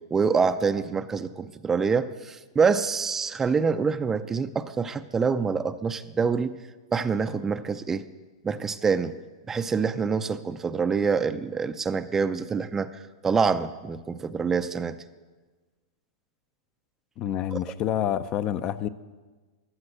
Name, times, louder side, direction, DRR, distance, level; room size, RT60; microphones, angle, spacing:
voice 1, 0.1-6.5 6.9-8.0 8.4-9.2 9.5-12.9 13.2-15.0 17.5-17.6, right 5 dB, 15° right, 11 dB, 0.5 m, -26 dB
voice 2, 17.2-18.9, left 10 dB, 35° left, 14 dB, 0.6 m, -28 dB
14.5 x 11.5 x 7.9 m, 1.3 s
supercardioid pair, 145°, 3 cm